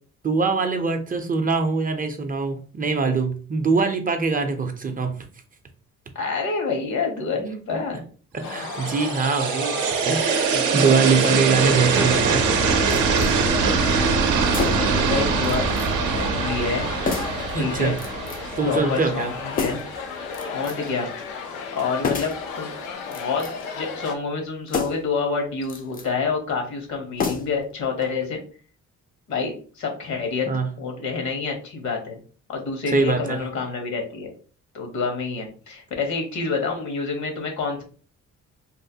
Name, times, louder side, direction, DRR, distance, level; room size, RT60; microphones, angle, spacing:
voice 1, 0.2-5.1 7.7-7.8 8.3-9.7 10.1-12.4 17.5-17.9 18.6-19.3 30.5-30.7 32.9-33.4, right 4 dB, 30° right, 6 dB, 0.4 m, -23 dB
voice 2, 6.1-8.0 14.4-15.7 16.0-16.9 17.5-18.0 18.6-19.8 20.5-21.1 21.7-22.7 23.1-28.4 29.3-30.5 30.8-32.2 32.5-34.3 34.7-37.8, left 4 dB, 70° left, 3 dB, 1.0 m, -28 dB
sound 1, 8.4-24.2, left 5 dB, 90° left, 0.5 m, -34 dB
sound 2, 8.5-19.5, right 5 dB, 85° right, 0.5 m, -23 dB
sound 3, 12.9-13.3 14.5-15.0 15.4-15.9 16.2-16.3 17.1-17.5 18.0-18.5 19.5-20.0 20.3-20.9 22.0-22.5 23.0-23.7 24.7-25.1 25.6-26.1 27.2-27.7 28.0-28.1, left 5 dB, 30° left, 0.4 m, -30 dB
3.0 x 2.1 x 2.6 m, 0.40 s
cardioid pair, 90°, 30 cm